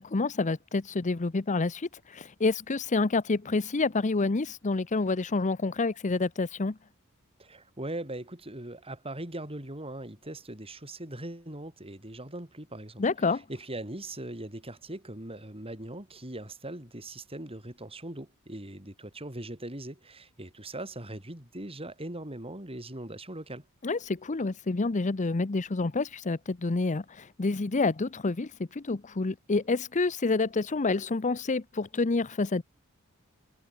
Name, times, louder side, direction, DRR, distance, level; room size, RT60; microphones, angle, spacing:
voice 1, 0.0-6.8 13.0-13.4 23.8-32.6, left 3 dB, 35° left, 0.7 m, -28 dB
voice 2, 7.4-13.0 13.5-23.6, right 1 dB, 25° right, 5.4 m, -40 dB
head